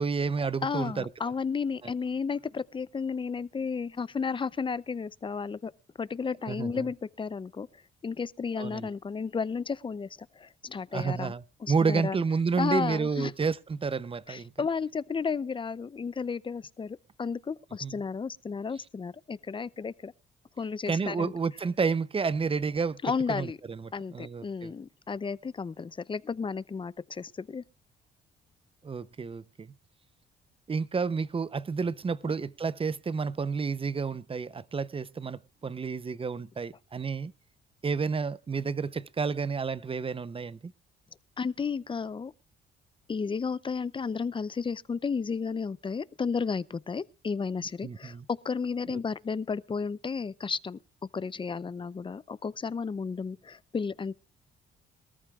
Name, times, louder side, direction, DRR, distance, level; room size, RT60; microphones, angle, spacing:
voice 1, 0.0-1.0 6.5-6.9 8.6-8.9 10.9-14.5 17.8-18.0 20.9-23.0 23.3-24.7 28.8-29.7 30.7-37.3 37.8-40.7 47.8-48.2 48.9-49.0, right 5 dB, 25° right, 0.7 m, -30 dB
voice 2, 0.6-5.7 6.0-7.7 8.0-10.1 10.4-11.3 11.6-12.2 12.6-13.3 14.3-20.1 20.6-21.3 23.0-23.6 23.9-27.6 32.2-32.3 41.4-42.3 43.1-48.2 48.4-50.8 51.1-54.1, left 5 dB, 25° left, 0.6 m, -33 dB
22.5 x 14.0 x 2.4 m
cardioid pair, 90°, 20 cm